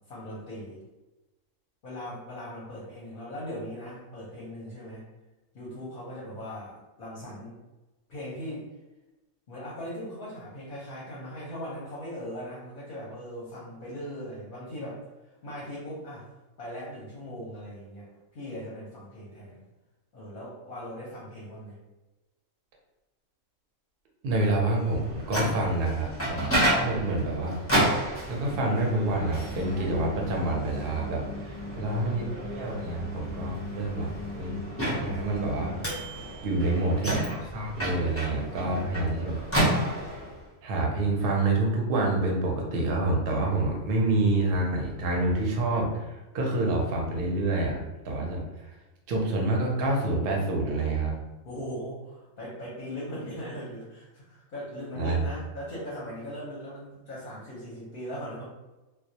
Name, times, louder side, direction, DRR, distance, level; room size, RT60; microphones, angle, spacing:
voice 1, 0.1-0.8 1.8-5.0 5.5-7.6 8.1-8.7 9.5-15.1 15.4-16.3 16.6-19.6 20.1-21.8 36.6-37.2 51.4-58.5, equal, 55° left, -6 dB, 0.7 m, -39 dB
voice 2, 24.2-27.6 28.3-34.6 35.0-35.7 36.4-39.4 40.6-46.0 46.3-48.4 49.1-51.1 55.0-55.2, right 2 dB, 60° right, -1 dB, 0.6 m, -27 dB
Microwave oven, 24.9-40.4, right 1 dB, 20° left, 0.3 m, -31 dB
2.2 x 2.0 x 2.7 m, 1.1 s
omnidirectional pair, 1.4 m